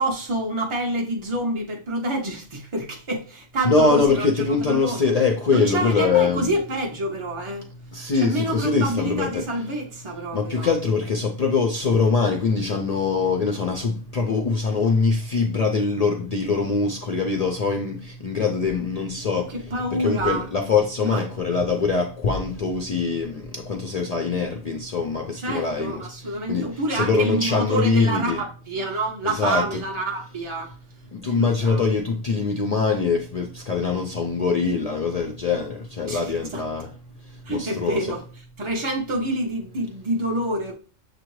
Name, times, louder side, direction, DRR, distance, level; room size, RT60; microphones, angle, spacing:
voice 1, 0.0-5.1 5.5-7.7 8.1-10.7 19.5-20.5 21.0-21.2 25.4-30.7 31.3-31.8 36.1-36.6 37.4-38.2 38.6-40.7, right 1 dB, 45° right, 0.4 m, -27 dB
voice 2, 3.6-6.5 7.9-9.4 10.3-19.7 20.0-28.4 29.2-29.8 31.1-36.9 37.3-38.1, left 4 dB, 70° left, 0.3 m, -23 dB
6.7 x 2.5 x 3.0 m
omnidirectional pair, 1.3 m